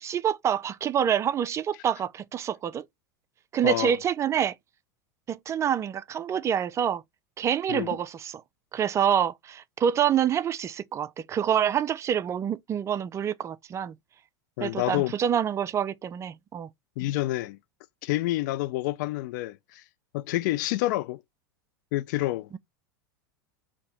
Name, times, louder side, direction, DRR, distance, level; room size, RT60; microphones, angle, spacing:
voice 1, 0.0-2.8 3.5-4.5 5.3-7.0 7.4-8.4 8.7-14.0 14.6-16.7, right 9 dB, 25° right, 0.4 m, -27 dB
voice 2, 3.6-4.0 7.7-8.0 14.6-15.1 17.0-17.6 18.0-19.8 20.1-21.2 21.9-22.5, left 17 dB, 65° left, 0.4 m, -28 dB
4.1 x 2.9 x 4.3 m
hypercardioid pair, 110°, 11 cm